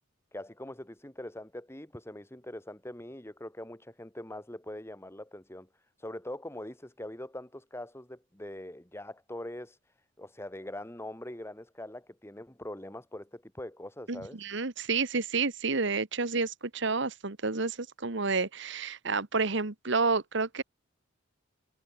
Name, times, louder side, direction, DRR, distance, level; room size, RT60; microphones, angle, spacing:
voice 1, 0.3-5.7 6.0-9.8 10.2-14.4, left 1 dB, 15° left, 2.2 m, -42 dB
voice 2, 14.1-20.6, right 4 dB, 65° right, 1.5 m, -30 dB
head